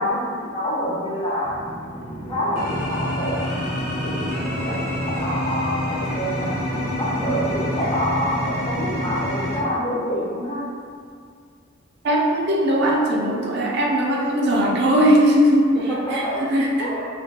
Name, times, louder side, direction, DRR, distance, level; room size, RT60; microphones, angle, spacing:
voice 1, 0.0-1.6 2.3-3.4 4.0-10.6 15.7-16.4 16.8-17.1, equal, 25° left, -7 dB, 0.5 m, -27 dB
sound 1, 1.4-9.6, left 1 dB, 75° left, 0.8 m, -27 dB
voice 2, 12.0-16.9, equal, 55° right, -1 dB, 0.4 m, -19 dB
2.2 x 2.2 x 2.7 m, 2.1 s
head